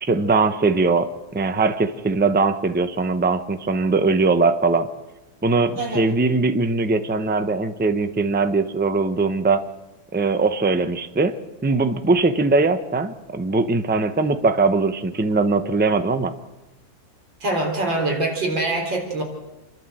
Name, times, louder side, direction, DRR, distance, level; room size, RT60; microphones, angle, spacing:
voice 1, 0.0-4.9 5.4-9.6 10.1-16.3, right 3 dB, 15° right, 10 dB, 0.3 m, -21 dB
voice 2, 17.4-19.2, right 2 dB, 75° right, 1 dB, 4.6 m, -24 dB
28.0 x 12.0 x 7.8 m, 1.0 s
omnidirectional pair, 2.0 m